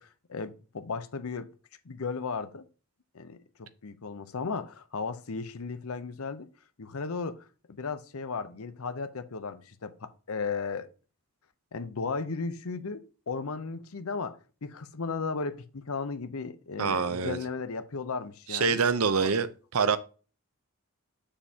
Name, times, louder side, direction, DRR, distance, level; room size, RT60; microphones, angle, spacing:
voice 1, 0.0-1.5 1.8-2.7 3.1-6.5 6.8-10.9 11.7-18.8 19.2-19.3, left 4 dB, 75° left, 0.7 m, -35 dB
voice 2, 16.8-17.4 18.5-19.5 19.7-20.0, right 5 dB, 80° right, 0.7 m, -25 dB
7.4 x 6.7 x 2.8 m
head